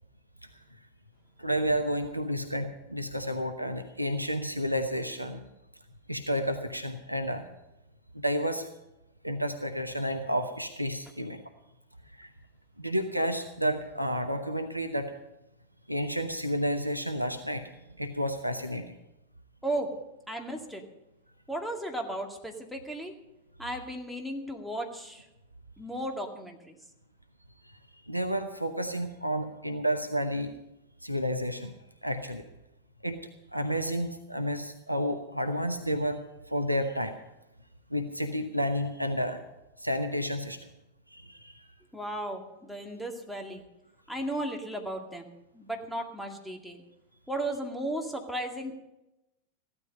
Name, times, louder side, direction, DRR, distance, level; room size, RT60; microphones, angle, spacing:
voice 1, 1.4-5.4 6.1-7.5 8.1-8.7 9.2-11.4 12.2-12.3 12.8-15.1 15.9-17.7 18.0-18.9 28.1-30.5 31.0-31.7 32.0-32.4 33.0-33.2 33.5-36.2 36.5-37.2 37.9-39.4 39.8-40.6 41.1-41.6, equal, 90° right, 7 dB, 1.0 m, -31 dB
voice 2, 20.3-20.8 21.5-23.1 23.6-25.3 25.8-26.8 41.9-43.7 44.1-46.8 47.3-48.7, right 1 dB, ahead, 3 dB, 2.2 m, -35 dB
15.5 x 12.5 x 5.4 m, 0.92 s
figure-of-eight pair, 90°, 0 cm